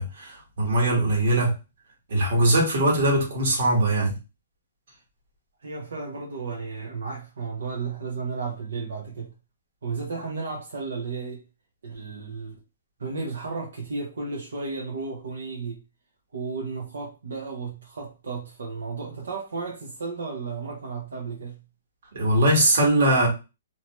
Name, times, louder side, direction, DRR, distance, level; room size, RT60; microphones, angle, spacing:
voice 1, 0.0-1.5 2.1-4.2 22.1-23.3, right 1 dB, 60° right, 1.5 m, -21 dB
voice 2, 5.6-9.3 9.8-11.4 11.8-12.6 13.0-15.8 16.3-21.6, right 4 dB, 90° right, 0.9 m, -33 dB
2.8 x 2.2 x 3.0 m
hypercardioid pair, 160°, 0 cm